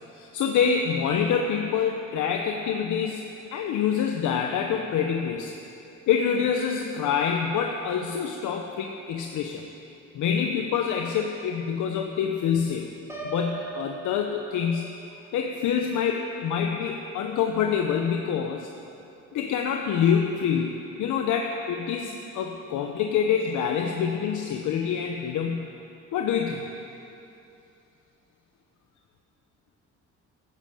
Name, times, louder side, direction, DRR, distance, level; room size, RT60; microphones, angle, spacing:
voice 1, 0.1-3.2 3.5-5.5 6.1-9.6 10.1-12.9 13.2-14.9 15.3-18.7 19.3-25.7 26.1-26.7, left 7 dB, 80° left, 3 dB, 0.9 m, -26 dB
Piano, 13.1-15.0, right 3 dB, 10° right, 3.0 m, -38 dB
13.0 x 10.0 x 7.6 m, 2.8 s
cardioid pair, 90°, 30 cm